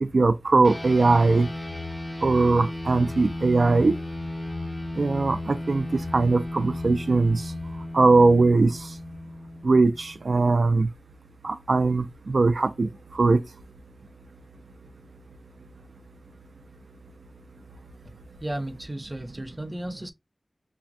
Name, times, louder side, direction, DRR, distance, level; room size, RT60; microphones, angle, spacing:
voice 1, 0.0-1.5 2.2-4.0 5.0-7.5 7.9-9.0 9.6-10.9 11.4-13.4, right 3 dB, 80° right, 0.4 m, -21 dB
sound 1, 0.6-10.4, left 1 dB, 25° left, 2.9 m, -34 dB
voice 2, 18.4-20.1, right 1 dB, 25° right, 0.7 m, -34 dB
5.8 x 2.2 x 2.6 m
wide cardioid pair, 65°, 0 cm